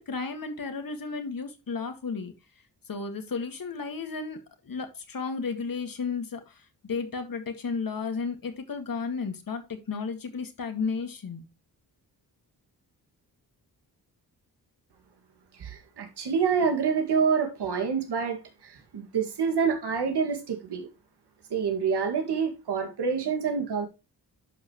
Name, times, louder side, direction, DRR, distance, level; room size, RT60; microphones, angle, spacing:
voice 1, 0.0-2.3 2.9-4.4 4.6-11.4, left 5 dB, 55° left, 2.1 m, -33 dB
voice 2, 15.6-20.9 21.5-23.9, right 6 dB, 75° right, 2.1 m, -27 dB
11.0 x 5.6 x 3.1 m
cardioid pair, 60°, 40 cm